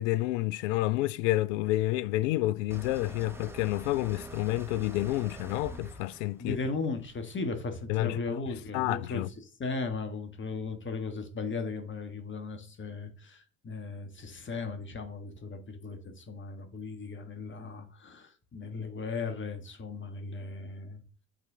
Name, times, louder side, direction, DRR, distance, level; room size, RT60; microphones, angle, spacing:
voice 1, 0.0-6.6 7.9-8.4 8.7-9.3, left 17 dB, 65° left, 0.5 m, -29 dB
sound 1, 2.7-7.6, right 2 dB, 5° right, 1.0 m, -46 dB
voice 2, 6.4-9.2 9.6-21.0, left 4 dB, 30° left, 1.4 m, -37 dB
8.0 x 4.2 x 3.8 m
figure-of-eight pair, 60°, 40 cm